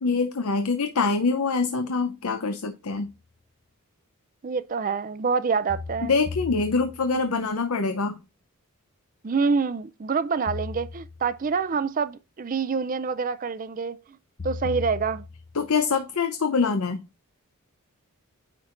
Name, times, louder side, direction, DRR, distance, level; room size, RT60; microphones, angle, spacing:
voice 1, 0.0-3.1 6.0-8.2 15.5-17.0, left 4 dB, 80° left, 0.7 m, -25 dB
sound 1, 3.0-3.1 5.7-7.3 10.5-11.5 14.4-15.7, left 4 dB, 40° left, 0.7 m, -37 dB
voice 2, 4.4-6.1 9.2-14.0 14.4-15.3, right 5 dB, 40° right, 0.4 m, -26 dB
9.6 x 4.5 x 2.5 m
head